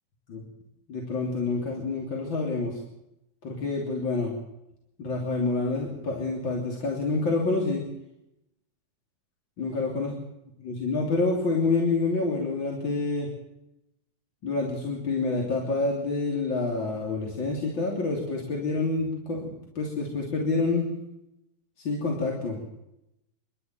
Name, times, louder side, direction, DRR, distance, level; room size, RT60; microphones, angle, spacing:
voice 1, 0.9-2.8 3.4-4.3 5.0-7.8 9.6-10.1 10.6-13.3 14.4-20.9 21.8-22.6, left 3 dB, 30° left, -1 dB, 2.8 m, -27 dB
28.0 x 12.5 x 9.3 m, 0.87 s
omnidirectional pair, 5.9 m